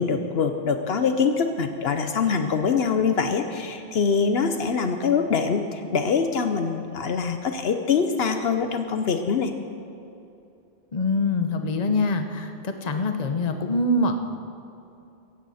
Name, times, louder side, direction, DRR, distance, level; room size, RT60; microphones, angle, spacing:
voice 1, 0.0-9.5, left 5 dB, 70° left, 7 dB, 1.0 m, -24 dB
voice 2, 10.9-14.1, left 2 dB, 40° left, 6 dB, 1.0 m, -24 dB
16.5 x 15.0 x 4.2 m, 2.8 s
omnidirectional pair, 1.1 m